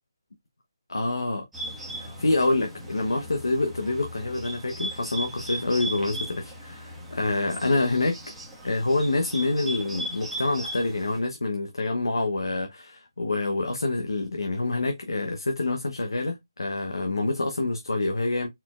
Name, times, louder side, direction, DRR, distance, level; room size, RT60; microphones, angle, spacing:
voice 1, 0.9-1.4 2.0-8.2 8.6-18.5, left 2 dB, 90° left, 0.9 m, -27 dB
Bird, 1.5-11.2, right 1 dB, 5° right, 1.2 m, -38 dB
4.4 x 4.0 x 2.4 m
hypercardioid pair, 160°, 2 cm